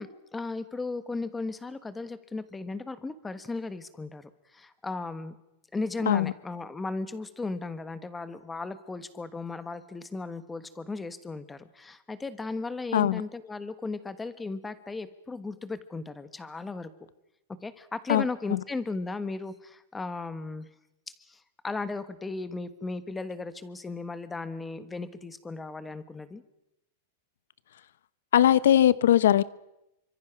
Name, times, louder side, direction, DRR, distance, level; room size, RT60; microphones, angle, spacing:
voice 1, 0.0-5.4 5.7-16.9 17.6-20.7 21.2-26.4, left 3 dB, 10° left, 13 dB, 1.3 m, -36 dB
voice 2, 28.3-29.4, left 11 dB, 85° left, 19 dB, 0.9 m, -20 dB
28.5 x 25.0 x 6.0 m, 0.88 s
supercardioid pair, 165°, 0 cm